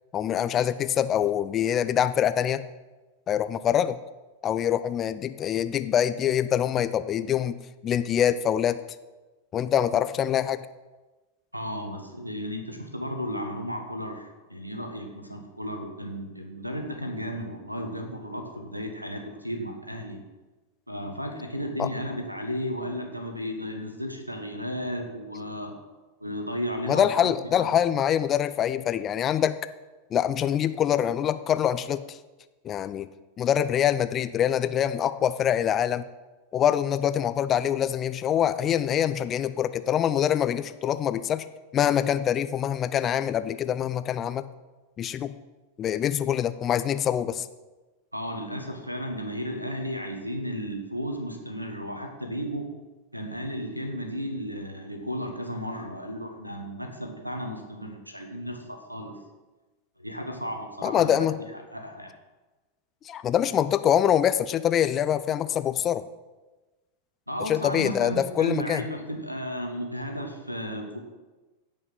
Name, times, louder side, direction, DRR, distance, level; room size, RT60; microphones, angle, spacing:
voice 1, 0.1-2.6 3.3-4.0 4.4-7.5 7.8-8.8 9.5-10.7 21.8-21.9 26.9-29.6 30.1-32.2 32.6-33.1 33.4-36.0 36.5-41.4 41.7-44.4 45.0-45.3 45.8-47.5 60.8-61.4 63.0-66.0 67.5-68.8, left 10 dB, 30° left, 13 dB, 0.5 m, -24 dB
voice 2, 11.5-20.2 20.9-25.7 26.2-27.7 48.1-52.7 53.1-59.2 60.0-61.2 61.7-62.1 67.3-71.0, equal, 90° right, 5 dB, 1.6 m, -34 dB
16.0 x 5.4 x 5.7 m, 1.2 s
figure-of-eight pair, 90°, 0 cm